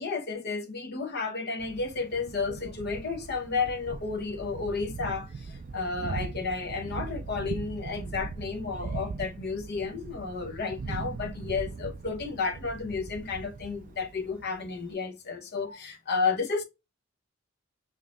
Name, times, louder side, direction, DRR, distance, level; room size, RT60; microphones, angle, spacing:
voice 1, 0.0-16.6, left 4 dB, 55° left, 0.9 m, -32 dB
Thunder, 1.6-14.9, right 4 dB, 40° right, 0.3 m, -40 dB
5.1 x 2.7 x 2.4 m
head